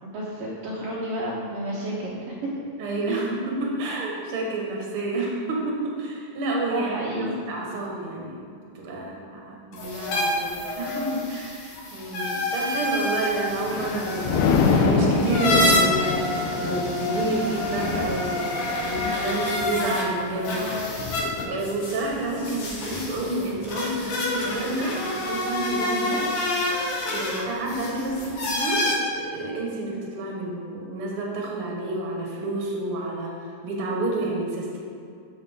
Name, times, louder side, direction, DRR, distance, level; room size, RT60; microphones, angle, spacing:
voice 1, 0.0-2.5 3.1-3.2 6.7-7.3, right 1 dB, 70° right, -7 dB, 1.6 m, -31 dB
voice 2, 2.8-8.4 8.7-20.9 21.4-26.6 27.1-34.8, right 2 dB, 55° right, -2 dB, 1.7 m, -29 dB
sound 1, 9.7-20.0 20.4-28.9, left 1 dB, 60° left, 2.4 m, -28 dB
Thunder, 13.2-24.7 25.1-25.4, left 4 dB, 80° left, 2.0 m, -27 dB
9.0 x 6.9 x 3.6 m, 2.4 s
omnidirectional pair, 4.1 m